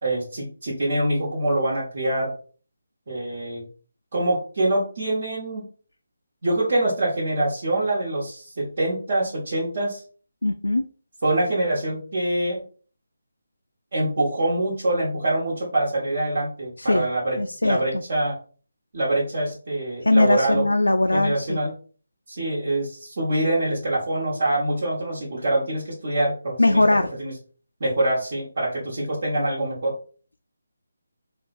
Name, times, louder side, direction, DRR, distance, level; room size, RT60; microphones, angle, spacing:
voice 1, 0.0-2.3 3.1-3.6 4.1-5.7 6.4-10.0 11.2-12.6 13.9-18.4 18.9-20.7 21.1-21.7 22.3-26.8 27.2-27.3 27.8-29.9, right 1 dB, 50° right, -6 dB, 1.3 m, -25 dB
voice 2, 10.4-10.9 16.8-17.1 17.4-17.8 20.0-21.6 26.6-27.1, left 2 dB, 80° left, 6 dB, 0.3 m, -20 dB
3.6 x 2.2 x 4.1 m, 0.40 s
figure-of-eight pair, 150°, 0 cm